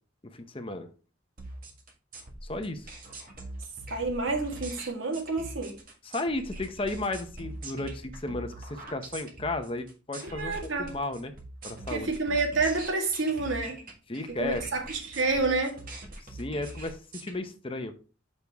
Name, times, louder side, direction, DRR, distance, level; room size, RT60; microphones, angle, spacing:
voice 1, 0.3-0.9 2.5-2.9 6.0-11.3 11.6-12.1 14.1-14.6 16.3-17.9, left 2 dB, 30° left, 0.8 m, -34 dB
sound 1, 1.4-17.3, right 2 dB, 45° right, 1.6 m, -43 dB
voice 2, 3.9-5.8 10.2-11.0 11.9-13.8 14.3-15.8, right 3 dB, 85° right, 1.8 m, -29 dB
6.6 x 5.4 x 3.5 m
head